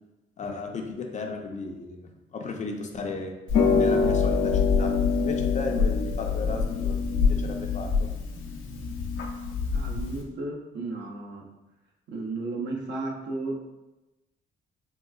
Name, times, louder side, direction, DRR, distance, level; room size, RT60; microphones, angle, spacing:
voice 1, 0.4-3.3 3.8-8.1, left 4 dB, 35° left, 3 dB, 0.5 m, -35 dB
Harp, 3.5-10.2, left 5 dB, 85° left, 0.6 m, -25 dB
voice 2, 9.7-11.5 12.1-13.6, right 2 dB, 70° right, -1 dB, 0.7 m, -34 dB
3.7 x 2.3 x 2.3 m, 1.0 s
cardioid pair, 90°, 20 cm